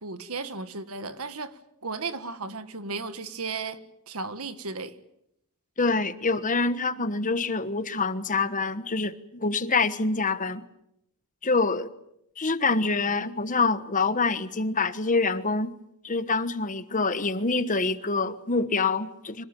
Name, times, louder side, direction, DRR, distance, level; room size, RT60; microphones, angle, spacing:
voice 1, 0.0-4.9, right 4 dB, 75° right, 1.6 m, -35 dB
voice 2, 5.8-10.6 11.4-11.9 12.4-15.7 16.0-19.4, left 3 dB, 35° left, 1.3 m, -26 dB
26.0 x 19.0 x 9.2 m
head